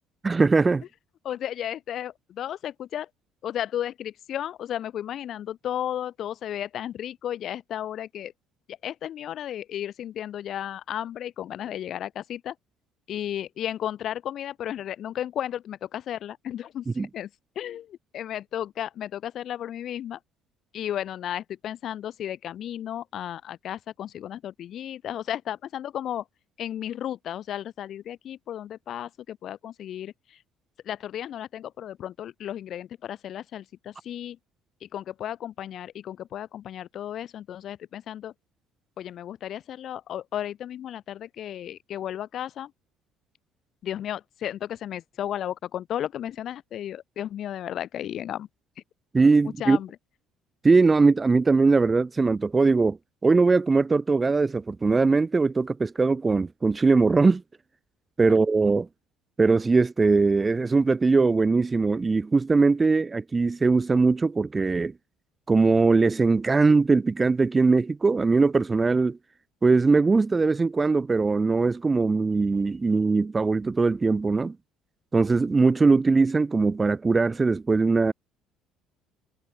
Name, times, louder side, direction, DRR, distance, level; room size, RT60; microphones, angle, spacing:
voice 1, 0.2-0.8 17.0-17.1 49.1-49.8 50.6-53.0 53.2-57.4 58.2-58.9 59.4-64.9 65.5-69.2 69.6-74.6 75.1-78.1, right 4 dB, 25° right, 0.5 m, -21 dB
voice 2, 1.2-3.1 3.4-8.3 8.7-12.5 13.1-17.3 17.5-20.2 20.7-26.2 26.6-30.4 30.8-34.4 34.8-38.3 39.0-42.7 43.8-48.5 49.6-49.9 58.3-58.4, left 11 dB, 55° left, 6.6 m, -34 dB
hypercardioid pair, 65°, 0 cm